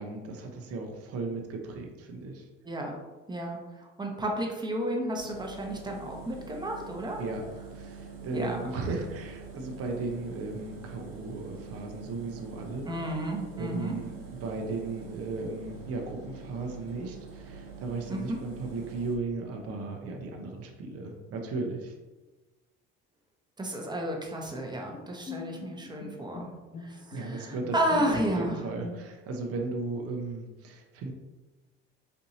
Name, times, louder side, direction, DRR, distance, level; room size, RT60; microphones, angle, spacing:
voice 1, 0.0-2.5 7.2-7.5 7.7-12.9 13.5-21.9 27.1-31.1, right 3 dB, 50° right, 2 dB, 0.7 m, -36 dB
voice 2, 3.3-7.2 8.3-8.6 12.8-13.9 18.1-18.4 23.6-26.5 26.8-28.5, right 1 dB, 15° right, 0 dB, 0.8 m, -32 dB
Engine, 5.2-19.2, right 5 dB, 85° right, 0.9 m, -45 dB
Bowed string instrument, 24.5-29.4, left 3 dB, 25° left, 0.4 m, -44 dB
4.4 x 2.6 x 2.7 m, 1.2 s
supercardioid pair, 75°, 31 cm